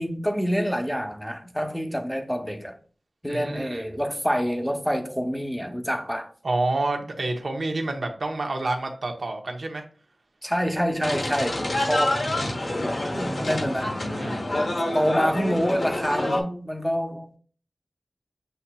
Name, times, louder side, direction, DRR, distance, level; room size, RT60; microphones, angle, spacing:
voice 1, 0.0-2.8 3.2-6.3 10.4-12.4 12.9-13.9 14.5-17.4, equal, 5° left, 0.8 m, -27 dB
voice 2, 3.3-3.8 6.4-9.8 14.1-14.4, right 2 dB, 75° right, 0.9 m, -28 dB
sound 1, 11.0-16.4, left 1 dB, 85° left, 1.1 m, -27 dB
7.9 x 2.8 x 2.3 m
wide cardioid pair, 50°, 0 cm